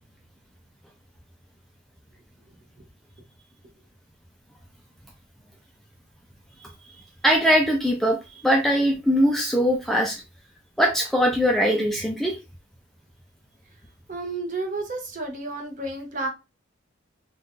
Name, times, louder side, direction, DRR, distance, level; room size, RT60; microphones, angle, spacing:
voice 1, 7.2-8.2 8.4-10.2 10.8-12.4, equal, ahead, 0 dB, 0.4 m, -21 dB
voice 2, 14.1-16.3, right 2 dB, 40° right, 3 dB, 0.8 m, -31 dB
2.6 x 2.3 x 3.6 m, 0.27 s
head